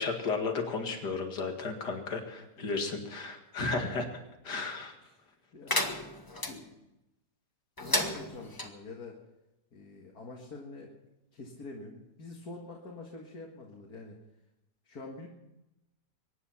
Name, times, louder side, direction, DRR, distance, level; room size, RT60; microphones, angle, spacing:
voice 1, 0.0-4.1 4.4-4.9, left 4 dB, 90° left, 4 dB, 2.5 m, -33 dB
voice 2, 5.0-6.7 7.8-9.2 9.7-10.9 11.3-14.2 14.8-15.3, left 3 dB, 65° left, -1 dB, 2.4 m, -46 dB
sound 1, 5.7-6.5 7.8-8.7, left 1 dB, 15° left, 1.2 m, -32 dB
23.5 x 10.5 x 5.8 m, 0.95 s
omnidirectional pair, 1.7 m